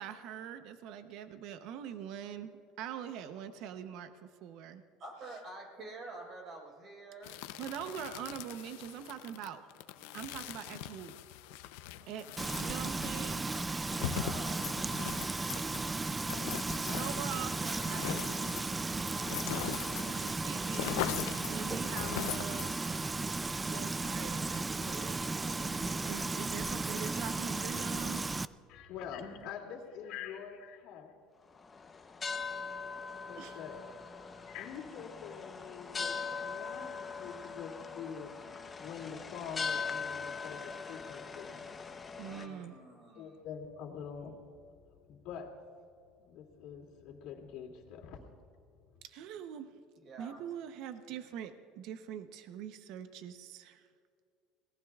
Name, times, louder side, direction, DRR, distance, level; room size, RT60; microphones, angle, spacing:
voice 1, 0.0-4.8 7.6-9.6 10.1-11.2 12.1-13.5 15.7-16.1 16.9-19.7 20.2-21.1 21.4-22.8 23.7-28.2 33.4-33.6 42.2-42.7 49.0-49.7 50.2-53.9, right 9 dB, 65° right, 9 dB, 0.8 m, -44 dB
voice 2, 5.0-7.4 10.0-10.5 13.9-14.8 42.2-43.4 50.0-50.4, right 2 dB, 45° right, 1 dB, 4.6 m, -48 dB
sound 1, 7.2-20.3 20.6-23.0, left 12 dB, 85° left, 0.6 m, -41 dB
Frying (food), 12.4-28.5, right 3 dB, 15° right, 0.3 m, -35 dB
voice 3, 28.7-31.1 33.1-33.8 34.5-38.4 38.8-41.6 43.1-44.5 45.1-45.6 46.2-48.2, left 7 dB, 65° left, -1 dB, 2.5 m, -45 dB
sound 2, 31.6-42.5, left 5 dB, 20° left, 0.8 m, -41 dB
26.0 x 18.5 x 2.4 m, 2.3 s
supercardioid pair, 120°, 0 cm